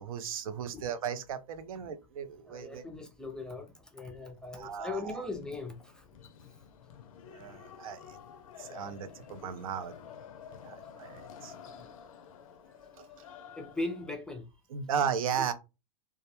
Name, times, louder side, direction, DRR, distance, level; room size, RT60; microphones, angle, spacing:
voice 1, 0.0-2.8 4.5-5.3 7.3-8.2 8.6-9.9 10.5-11.5 13.0-13.1 14.7-15.5, right 7 dB, 80° right, 0.4 m, -36 dB
voice 2, 2.5-6.3 11.8-11.9 13.5-14.4, left 2 dB, 5° left, 0.4 m, -39 dB
sound 1, 4.6-14.1, left 7 dB, 75° left, 0.4 m, -51 dB
2.3 x 2.0 x 2.8 m
hypercardioid pair, 115°, 18 cm